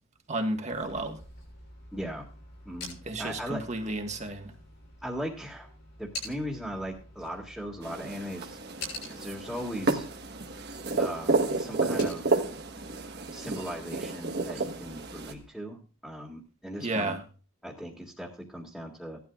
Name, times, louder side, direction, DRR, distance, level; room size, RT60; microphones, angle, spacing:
voice 1, 0.3-1.2 3.1-4.5 16.8-17.2, right 2 dB, 35° right, 3 dB, 1.6 m, -32 dB
sound 1, 0.7-15.5, left 2 dB, 65° left, 6.9 m, -47 dB
voice 2, 1.9-2.3 2.7-3.6 5.0-5.7 6.0-8.6 9.1-10.1 11.0-12.2 13.3-17.2 17.6-19.2, equal, ahead, -3 dB, 2.0 m, -38 dB
sound 2, 7.8-15.3, right 3 dB, 55° right, 1.2 m, -31 dB
17.0 x 12.0 x 2.4 m, 0.36 s
head